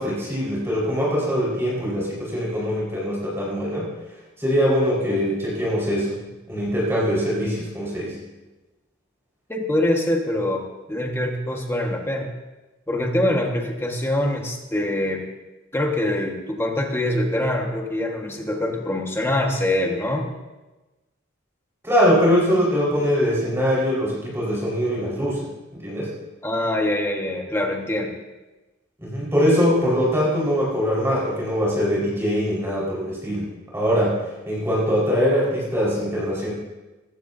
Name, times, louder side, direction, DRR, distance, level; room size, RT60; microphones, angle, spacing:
voice 1, 0.0-3.9 4.4-6.2 6.5-8.2 21.8-25.5 25.7-26.1 29.0-33.5 33.7-34.2 34.5-36.5, equal, 15° right, -6 dB, 5.0 m, -22 dB
voice 2, 9.5-12.3 12.9-15.2 15.7-20.3 26.4-28.1, left 1 dB, 10° left, 1 dB, 1.6 m, -24 dB
20.5 x 15.5 x 2.8 m, 1.1 s
head